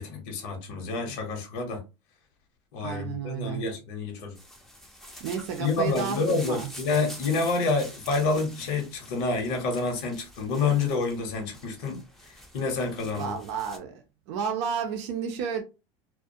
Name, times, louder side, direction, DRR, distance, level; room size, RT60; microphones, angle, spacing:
voice 1, 0.0-1.8 2.7-4.4 5.6-13.3, left 4 dB, 65° left, 0.9 m, -28 dB
voice 2, 2.8-3.6 5.2-6.7 13.2-14.0 14.3-15.6, right 7 dB, 75° right, 0.5 m, -31 dB
sound 1, 4.3-13.8, equal, ahead, 0.5 m, -47 dB
2.4 x 2.1 x 2.6 m
supercardioid pair, 110°, 15 cm